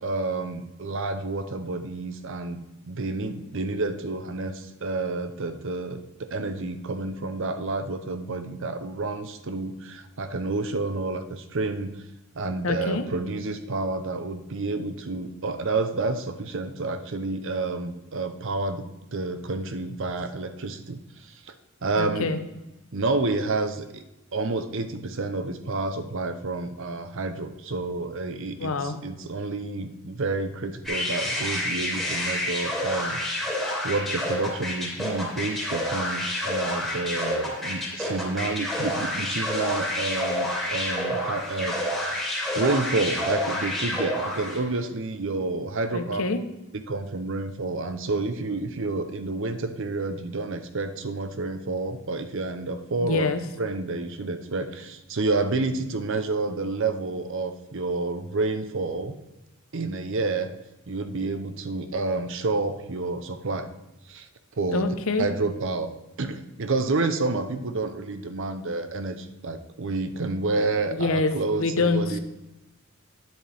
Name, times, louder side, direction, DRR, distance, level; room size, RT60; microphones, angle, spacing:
voice 1, 0.0-11.9 12.4-18.9 19.1-21.5 21.8-22.3 22.9-24.0 24.3-33.5 33.8-46.2 46.7-53.3 53.6-59.1 59.7-60.5 60.9-63.7 64.1-64.3 64.6-64.9 65.2-65.9 66.2-72.2, right 3 dB, 55° right, 9 dB, 0.7 m, -29 dB
voice 2, 12.6-13.0 22.0-22.4 28.6-29.0 45.9-46.4 53.0-53.4 64.7-65.3 70.9-72.2, left 3 dB, 65° left, 9 dB, 0.8 m, -26 dB
sound 1, 30.8-44.7, left 1 dB, ahead, 2.6 m, -29 dB
10.5 x 7.5 x 3.4 m, 1.0 s
head